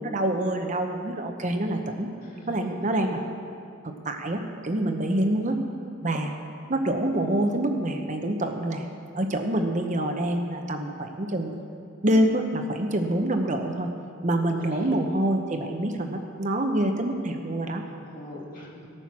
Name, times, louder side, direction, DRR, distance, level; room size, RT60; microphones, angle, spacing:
voice 1, 0.0-2.1 2.5-3.2 3.8-5.6 6.0-6.3 6.7-8.8 9.1-11.6 12.0-13.9 14.2-17.8, right 1 dB, 40° right, 4 dB, 0.9 m, -26 dB
voice 2, 2.2-2.6 2.9-3.1 14.6-15.0 17.8-18.9, left 1 dB, 45° left, -3 dB, 2.4 m, -43 dB
15.5 x 8.9 x 6.1 m, 2.5 s
head